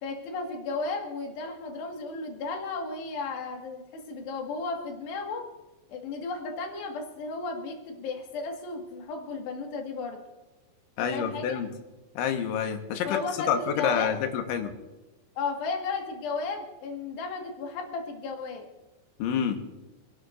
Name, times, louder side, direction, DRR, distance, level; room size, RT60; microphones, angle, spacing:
voice 1, 0.0-5.5 5.9-10.2 11.0-11.6 13.1-14.2 15.4-18.7, left 4 dB, 70° left, 2 dB, 3.8 m, -34 dB
voice 2, 11.0-11.7 12.2-13.2 13.5-14.7 19.2-19.6, left 8 dB, 85° left, 5 dB, 3.7 m, -28 dB
28.5 x 11.5 x 2.6 m, 1.1 s
omnidirectional pair, 5.3 m